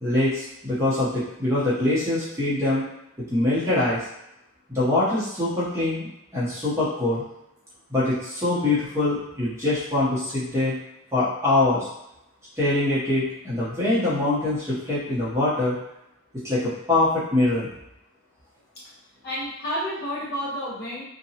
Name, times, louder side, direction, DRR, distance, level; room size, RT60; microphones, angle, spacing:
voice 1, 0.0-2.8 3.3-4.0 4.7-7.2 7.9-10.7 11.1-11.9 12.6-15.7 16.4-17.7, left 2 dB, 15° right, -10 dB, 0.8 m, -23 dB
voice 2, 19.2-21.0, equal, 50° left, -8 dB, 1.0 m, -30 dB
2.8 x 2.2 x 2.7 m, 0.85 s
head